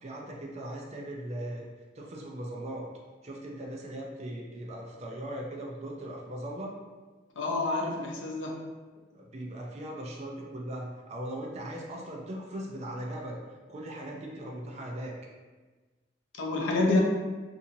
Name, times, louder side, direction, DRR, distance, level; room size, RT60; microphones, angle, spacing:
voice 1, 0.0-1.7 1.9-2.9 3.2-6.8 9.1-13.4 13.7-15.2, right 1 dB, 35° right, -1 dB, 0.4 m, -39 dB
voice 2, 7.4-8.6 16.4-17.0, left 2 dB, 90° left, -1 dB, 0.6 m, -27 dB
2.8 x 2.6 x 2.6 m, 1.3 s
head